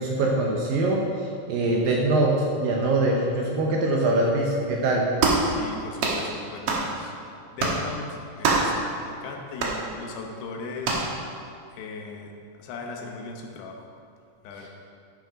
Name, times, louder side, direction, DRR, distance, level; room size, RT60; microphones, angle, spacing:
voice 1, 0.0-5.1 5.5-5.6, right 2 dB, 75° right, -1 dB, 2.2 m, -23 dB
sound 1, 5.2-5.5 6.0-6.2 6.7-6.9 7.6-7.8 8.4-8.7 9.6-9.8 10.8-11.1, right 4 dB, 90° right, 1.3 m, -23 dB
voice 2, 5.5-7.1 7.5-11.1 11.7-12.3 12.6-13.8 14.4-14.7, left 4 dB, 80° left, 2 dB, 3.1 m, -38 dB
11.5 x 6.4 x 5.1 m, 2.4 s
omnidirectional pair, 4.8 m